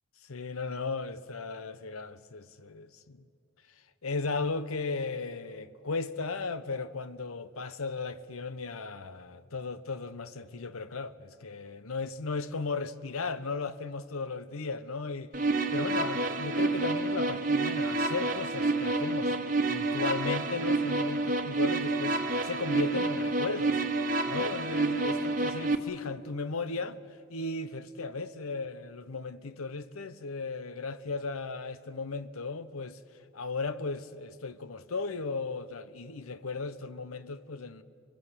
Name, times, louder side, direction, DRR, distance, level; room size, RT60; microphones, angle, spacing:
voice 1, 0.3-3.2 4.0-15.3 15.7-19.3 19.7-23.8 24.3-27.0 27.3-33.0 33.3-37.8, left 4 dB, 90° left, 0.9 m, -36 dB
sound 1, 15.3-25.8, right 2 dB, 40° right, 1.2 m, -29 dB
26.0 x 22.5 x 8.2 m
head